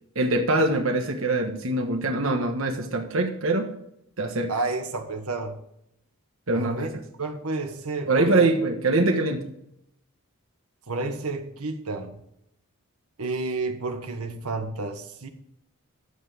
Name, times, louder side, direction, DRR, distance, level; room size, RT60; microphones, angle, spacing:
voice 1, 0.1-3.7 4.2-4.5 6.5-6.9 8.1-9.5, right 2 dB, 65° right, 5 dB, 1.3 m, -23 dB
voice 2, 4.5-5.6 6.5-6.9 7.2-8.5 10.9-12.2 13.2-15.3, right 3 dB, 85° right, 5 dB, 1.4 m, -31 dB
12.0 x 8.1 x 5.0 m, 0.77 s
head